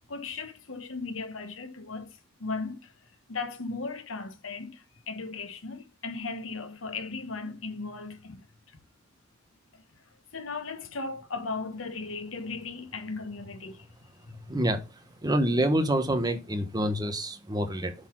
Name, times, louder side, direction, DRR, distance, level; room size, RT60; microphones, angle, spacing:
voice 1, 0.1-2.1 2.4-2.9 3.3-8.4 9.7-9.8 10.3-13.8 14.3-14.4, left 4 dB, 85° left, 1.3 m, -37 dB
voice 2, 14.5-14.8 15.2-17.9, right 1 dB, 20° right, 1.0 m, -26 dB
7.9 x 4.1 x 6.1 m
head